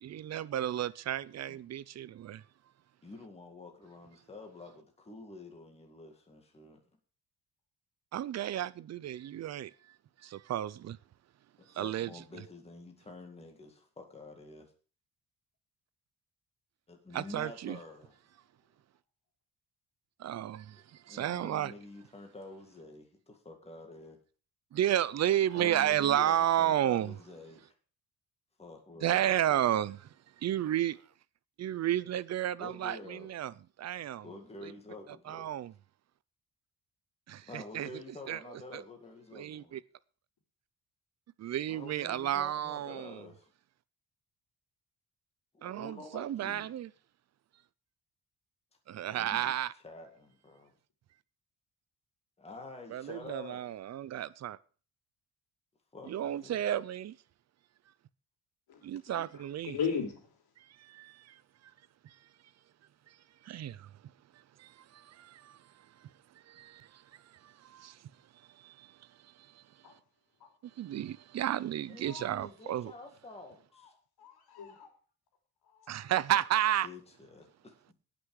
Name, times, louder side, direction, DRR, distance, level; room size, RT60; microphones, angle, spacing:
voice 1, 0.0-2.4 8.1-11.0 11.7-12.1 17.1-17.8 20.2-21.7 24.7-27.2 29.0-31.0 31.6-34.3 34.6-34.7 35.3-35.7 37.3-38.4 38.7-38.8 39.3-39.8 41.4-43.2 45.6-46.9 48.9-49.7 52.9-54.6 56.1-57.2 58.8-59.8 60.6-61.4 62.0-62.2 63.1-63.2 63.4-63.9 64.3-69.6 70.6-72.9 75.9-76.9, right 11 dB, 45° right, 0.5 m, -33 dB
voice 2, 3.0-6.8 11.7-14.7 16.9-18.1 20.7-20.8 21.1-24.2 25.5-27.7 28.6-29.7 32.6-33.3 34.2-35.5 37.4-39.7 41.7-43.5 45.5-46.7 49.1-49.5 49.8-50.7 52.4-53.6 55.9-56.6 71.9-73.9 76.8-77.9, left 3 dB, 15° left, 2.0 m, -48 dB
voice 3, 58.7-59.3 59.7-60.2 69.8-69.9 74.2-74.9 75.7-76.1, left 6 dB, 70° left, 3.6 m, -36 dB
18.0 x 6.1 x 4.8 m
cardioid pair, 175°, 39 cm